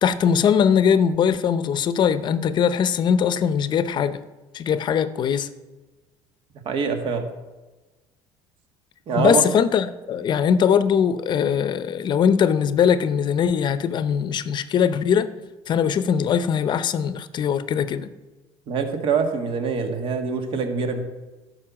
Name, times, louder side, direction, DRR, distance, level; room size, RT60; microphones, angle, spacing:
voice 1, 0.0-4.2 4.5-5.5 9.1-15.3 15.7-18.1, left 7 dB, 45° left, 0.7 m, -21 dB
voice 2, 6.7-7.3 9.1-9.4 18.7-21.0, right 5 dB, 55° right, 1.8 m, -24 dB
11.5 x 5.5 x 7.4 m
cardioid pair, 110°, 11 cm